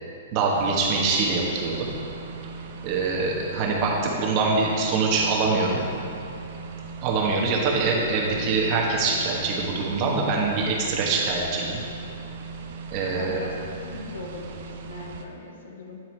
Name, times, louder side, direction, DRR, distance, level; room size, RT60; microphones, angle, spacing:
voice 1, 0.3-1.9 2.8-5.8 7.0-11.8 12.9-13.5, right 3 dB, 35° right, -2 dB, 1.1 m, -24 dB
sound 1, 0.5-15.3, right 4 dB, 60° right, 0.5 m, -39 dB
voice 2, 13.2-16.0, left 3 dB, 90° left, 1 dB, 0.7 m, -40 dB
9.1 x 3.9 x 3.2 m, 2.7 s
hypercardioid pair, 145°, 0 cm